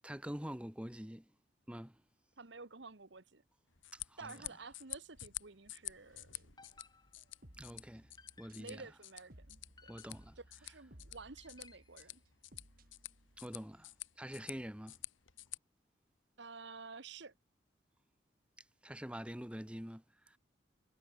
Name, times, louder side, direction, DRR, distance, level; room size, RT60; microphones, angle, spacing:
voice 1, 0.0-1.2 1.7-2.0 3.9-4.3 7.6-8.1 8.4-8.8 9.9-10.4 13.4-13.9 14.2-15.0 18.8-20.4, equal, 5° right, 1.1 m, -46 dB
voice 2, 2.4-3.4 4.2-6.5 8.6-9.9 10.4-12.2 16.4-17.3, right 4 dB, 65° right, 1.3 m, -51 dB
sound 1, 3.7-15.6, left 16 dB, 80° left, 2.2 m, -50 dB
sound 2, 6.3-6.7 7.2-9.0 9.3-14.0 14.9-15.0, equal, 50° right, 4.1 m, -61 dB
sound 3, 6.6-7.5 8.2-8.8 9.8-10.6 11.4-12.0, left 4 dB, 20° left, 2.3 m, -62 dB
head